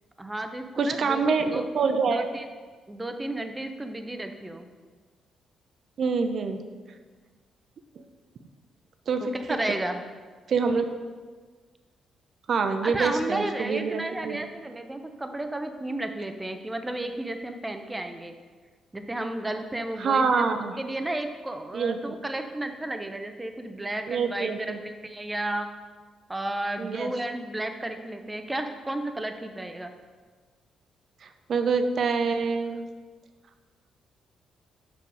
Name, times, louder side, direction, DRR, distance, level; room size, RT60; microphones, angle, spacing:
voice 1, 0.2-1.6 2.1-2.4 2.9-4.7 9.2-10.0 12.8-18.3 18.9-24.7 25.0-25.7 26.3-29.9, right 1 dB, 15° right, 6 dB, 0.8 m, -33 dB
voice 2, 0.8-2.3 6.0-6.6 8.0-8.1 9.1-9.3 10.5-10.9 12.5-14.4 20.0-20.8 21.7-22.0 24.1-24.8 26.8-27.1 31.2-32.9, right 5 dB, 60° right, 7 dB, 0.7 m, -26 dB
6.9 x 5.2 x 4.9 m, 1.5 s
supercardioid pair, 55°, 0 cm